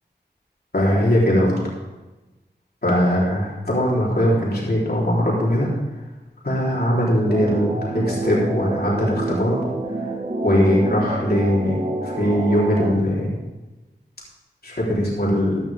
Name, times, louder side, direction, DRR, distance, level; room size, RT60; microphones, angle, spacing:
voice 1, 0.7-1.6 2.8-5.7 6.4-9.6 10.0-10.1 10.4-13.3 14.6-15.6, equal, 60° left, -5 dB, 3.8 m, -20 dB
sound 1, 7.3-12.9, right 2 dB, 40° right, 1.5 m, -28 dB
14.5 x 10.5 x 3.6 m, 1.1 s
wide cardioid pair, 55°, 18 cm